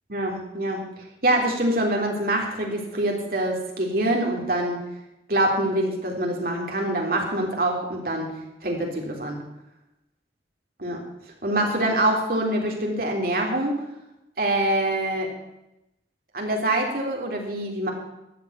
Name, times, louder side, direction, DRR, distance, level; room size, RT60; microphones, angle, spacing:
voice 1, 0.1-0.8 1.2-4.8 5.3-8.3 8.6-9.4 10.8-11.0 11.4-13.8 14.4-15.3 16.3-17.9, right 1 dB, 55° right, 0 dB, 3.5 m, -25 dB
13.5 x 7.7 x 9.8 m, 0.90 s
head